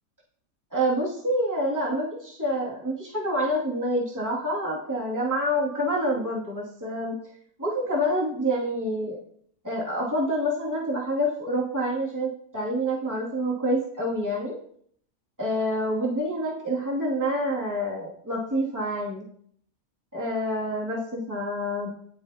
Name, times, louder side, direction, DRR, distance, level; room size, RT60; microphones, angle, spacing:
voice 1, 0.7-7.2 7.6-9.2 9.6-14.6 15.4-19.2 20.1-21.9, equal, 10° right, -5 dB, 2.5 m, -27 dB
18.5 x 7.1 x 2.9 m, 0.63 s
omnidirectional pair, 1.5 m